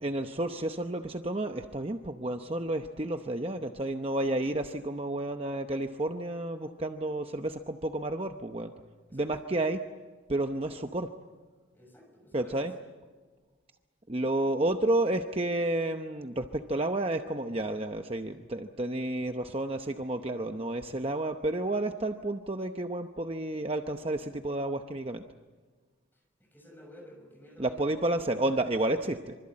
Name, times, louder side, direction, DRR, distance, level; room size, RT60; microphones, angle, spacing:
voice 1, 0.0-8.7 9.1-9.8 10.3-11.1 12.3-12.7 14.1-25.2 27.6-29.3, right 1 dB, 30° right, 6 dB, 0.8 m, -31 dB
voice 2, 11.7-12.7 26.5-28.6, equal, 10° left, 2 dB, 6.5 m, -52 dB
25.5 x 25.0 x 8.7 m, 1.4 s
head